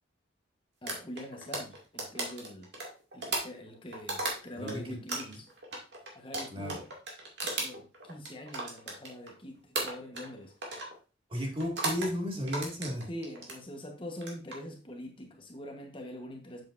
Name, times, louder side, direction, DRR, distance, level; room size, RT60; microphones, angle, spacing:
voice 1, 0.8-2.7 3.1-5.5 6.1-6.8 7.6-10.5 13.1-16.7, left 1 dB, 30° left, 1.1 m, -44 dB
sound 1, 0.9-4.7 5.1-9.4 9.7-10.3 10.6-10.9 11.6-12.1 12.5-13.6 14.1-14.6, right 2 dB, 65° right, 2.3 m, -36 dB
voice 2, 4.5-5.0 5.2-5.4 6.5-6.8 11.3-13.1, equal, 30° right, 2.1 m, -34 dB
7.7 x 7.3 x 2.6 m
head